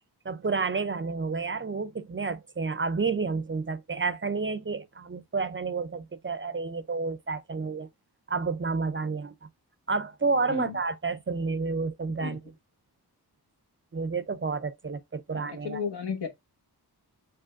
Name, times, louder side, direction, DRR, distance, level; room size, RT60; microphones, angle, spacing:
voice 1, 0.2-7.9 8.3-9.5 9.9-12.4 13.9-15.8, right 4 dB, 30° right, 0.4 m, -30 dB
voice 2, 12.1-12.4 15.3-16.3, left 6 dB, 80° left, 1.2 m, -34 dB
5.1 x 4.3 x 2.4 m
wide cardioid pair, 85°, 40 cm